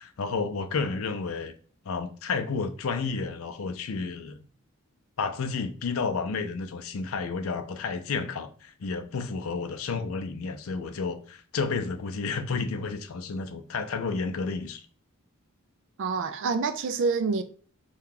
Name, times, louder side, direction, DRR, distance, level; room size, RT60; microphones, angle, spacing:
voice 1, 0.0-1.5 1.9-4.4 5.2-14.9, left 4 dB, 70° left, 0.5 m, -31 dB
voice 2, 16.0-17.4, right 4 dB, 60° right, 0.4 m, -27 dB
2.8 x 2.3 x 3.7 m
head